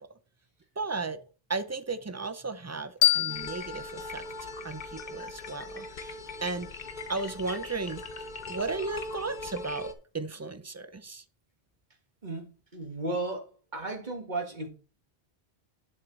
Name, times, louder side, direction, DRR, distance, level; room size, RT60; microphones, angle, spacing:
voice 1, 0.8-1.2 1.5-4.2 4.6-6.1 6.4-6.7 7.1-8.0 8.5-11.2, right 3 dB, 30° right, 0.3 m, -35 dB
sound 1, 3.0-5.8, left 12 dB, 80° left, 1.0 m, -30 dB
sound 2, 3.3-9.9, left 2 dB, 45° left, 0.9 m, -41 dB
voice 2, 12.2-14.7, right 2 dB, 45° right, 1.7 m, -35 dB
7.7 x 6.6 x 3.8 m
omnidirectional pair, 1.1 m